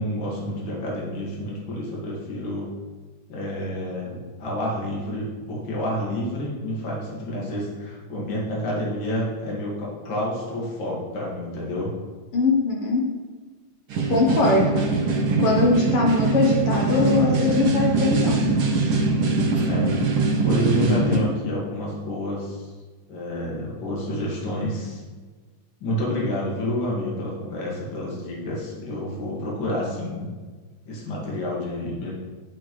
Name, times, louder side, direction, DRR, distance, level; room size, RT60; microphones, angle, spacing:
voice 1, 0.0-2.7 3.3-11.9 19.7-19.9 20.4-22.7 23.1-25.0 25.8-30.3 30.8-32.1, left 1 dB, 45° left, -5 dB, 2.3 m, -29 dB
voice 2, 12.3-13.0 14.1-14.9 15.4-18.4, left 2 dB, 65° left, -2 dB, 1.5 m, -21 dB
sound 1, 13.9-21.2, right 3 dB, 60° right, 1.4 m, -22 dB
9.2 x 6.5 x 3.1 m, 1.4 s
omnidirectional pair, 3.4 m